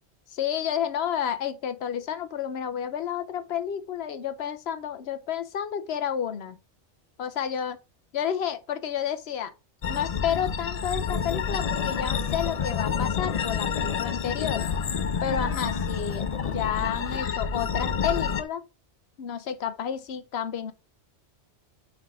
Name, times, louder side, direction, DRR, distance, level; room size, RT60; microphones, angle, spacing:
voice 1, 0.3-6.6 7.2-7.8 8.1-9.5 9.9-14.7 15.2-18.6 19.2-20.7, left 9 dB, 70° left, 1.0 m, -30 dB
sound 1, 9.8-18.4, left 6 dB, 50° left, 0.5 m, -28 dB
9.2 x 3.6 x 3.6 m
omnidirectional pair, 1.2 m